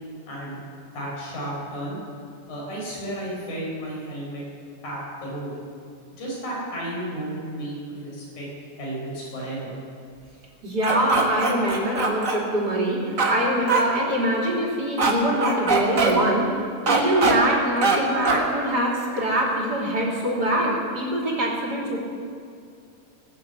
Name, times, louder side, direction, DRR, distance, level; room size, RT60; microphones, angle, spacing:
voice 1, 0.3-0.6 0.9-2.0 2.5-4.4 4.8-5.5 6.1-8.5 8.7-9.7, right 1 dB, 60° left, -5 dB, 6.0 m, -33 dB
voice 2, 10.6-16.5 16.9-22.0, right 1 dB, 30° right, -3 dB, 3.2 m, -24 dB
sound 1, 10.8-12.4 13.2-13.3 13.7-13.8 15.0-15.1 15.4-16.1 16.9-17.3 17.8-18.0 18.2-18.4, right 4 dB, 50° right, 0.9 m, -21 dB
19.0 x 7.5 x 8.1 m, 2.3 s
omnidirectional pair, 3.8 m